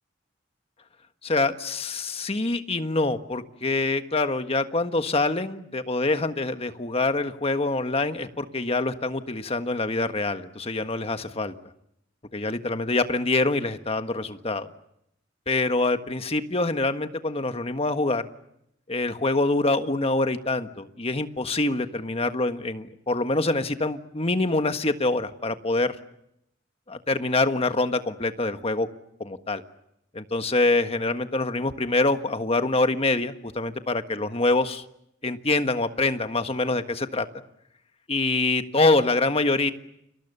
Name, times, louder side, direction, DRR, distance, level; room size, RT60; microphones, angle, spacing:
voice 1, 1.2-11.5 12.3-14.7 15.5-18.2 18.9-25.9 26.9-28.9 29.2-29.6 30.1-34.8 35.2-37.2 38.1-39.7, left 2 dB, 35° left, 8 dB, 1.5 m, -25 dB
30.0 x 26.5 x 6.9 m, 0.79 s
head